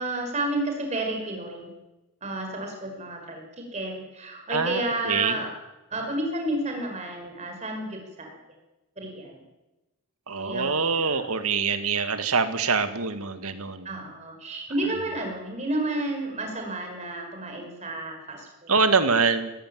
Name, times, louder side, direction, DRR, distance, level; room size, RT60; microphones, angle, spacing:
voice 1, 0.0-1.7 2.2-5.5 5.9-8.3 9.0-9.4 10.4-11.2 11.8-12.0 13.9-18.7, right 1 dB, 30° right, 3 dB, 5.3 m, -31 dB
voice 2, 4.5-5.3 10.3-13.9 18.7-19.5, right 5 dB, 85° right, 9 dB, 1.9 m, -24 dB
19.0 x 15.5 x 9.5 m, 1.0 s
head